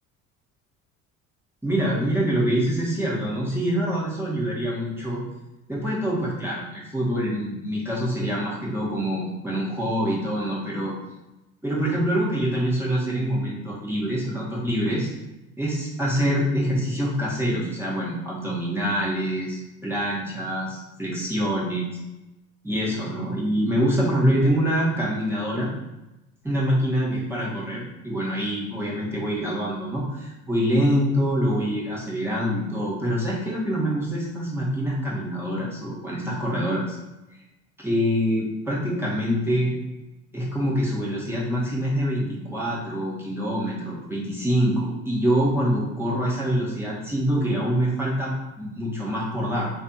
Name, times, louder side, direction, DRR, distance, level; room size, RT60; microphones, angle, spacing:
voice 1, 1.6-5.2 5.7-10.9 11.6-15.1 15.6-21.9 22.6-25.7 26.4-37.0 37.8-39.7 40.3-49.7, equal, 5° right, -6 dB, 1.2 m, -25 dB
3.3 x 2.4 x 2.7 m, 1.0 s
hypercardioid pair, 65°, 42 cm